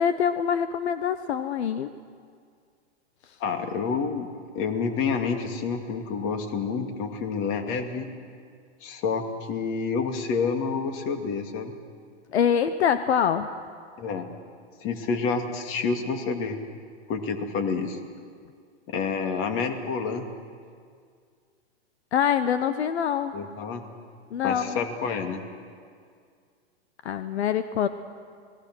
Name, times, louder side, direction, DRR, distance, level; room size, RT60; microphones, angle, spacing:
voice 1, 0.0-1.9 12.3-13.6 22.1-23.3 24.3-24.8 27.0-27.9, left 8 dB, 75° left, 11 dB, 1.0 m, -24 dB
voice 2, 3.4-4.3 4.5-8.1 8.8-11.7 14.0-14.2 14.8-16.6 17.1-18.0 18.9-20.3 23.3-23.8 24.4-25.4, left 5 dB, 40° left, 5 dB, 2.5 m, -28 dB
29.0 x 20.0 x 6.3 m, 2.1 s
hypercardioid pair, 130°, 33 cm